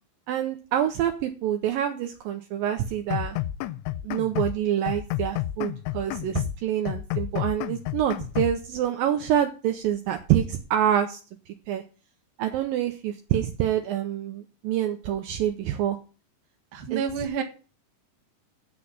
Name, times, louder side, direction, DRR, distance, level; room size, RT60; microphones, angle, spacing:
voice 1, 0.3-3.4 4.0-11.2 11.7-11.8 12.4-16.0 16.9-17.0, right 10 dB, 85° right, 5 dB, 2.1 m, -26 dB
sound 1, 3.1-4.6 4.9-6.6 6.9-8.6, left 14 dB, 85° left, 2.8 m, -31 dB
voice 2, 16.7-17.4, right 6 dB, 55° right, 4 dB, 1.8 m, -29 dB
7.9 x 6.5 x 7.2 m, 0.35 s
omnidirectional pair, 5.0 m